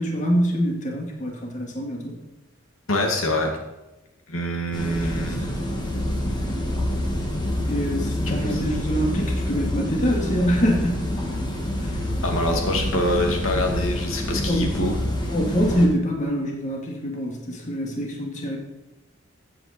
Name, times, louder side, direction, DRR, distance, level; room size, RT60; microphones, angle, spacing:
voice 1, 0.0-2.2 4.9-5.7 7.7-11.0 14.5-14.7 15.3-18.6, equal, 35° left, 0 dB, 2.3 m, -25 dB
voice 2, 2.9-3.5 4.3-5.5 8.2-8.6 12.2-15.0, left 1 dB, 90° left, 2 dB, 2.3 m, -25 dB
sound 1, 4.7-15.9, left 1 dB, 20° left, 1.8 m, -27 dB
14.5 x 8.4 x 4.4 m, 1.0 s
head